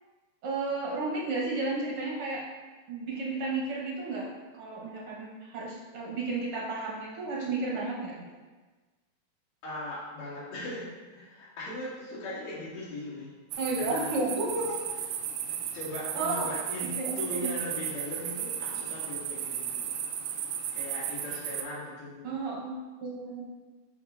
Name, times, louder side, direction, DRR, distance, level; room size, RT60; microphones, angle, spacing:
voice 1, 0.4-2.4 2.9-8.2 13.6-14.9 16.1-16.5 17.0-17.5 22.2-22.7 23.0-23.4, right 3 dB, 60° right, -4 dB, 1.6 m, -32 dB
voice 2, 9.6-13.3 13.7-14.1 15.5-19.9 20.7-22.3, left 1 dB, 80° left, -9 dB, 3.9 m, -39 dB
sound 1, 13.5-21.6, right 9 dB, 85° right, 2.1 m, -35 dB
11.5 x 4.7 x 2.5 m, 1.3 s
omnidirectional pair, 3.7 m